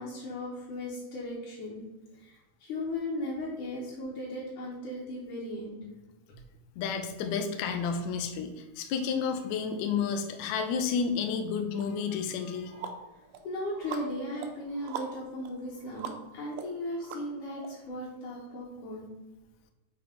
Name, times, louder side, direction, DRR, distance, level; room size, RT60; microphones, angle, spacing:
voice 1, 0.0-1.8 2.1-5.8 6.3-6.4 13.4-19.1, left 1 dB, 70° left, -6 dB, 2.4 m, -37 dB
voice 2, 6.8-12.7, left 6 dB, 85° left, 6 dB, 1.6 m, -31 dB
sound 1, 11.8-11.9 12.3-17.7, right 7 dB, 90° right, 2.4 m, -43 dB
7.0 x 3.0 x 5.0 m, 1.1 s
omnidirectional pair, 3.9 m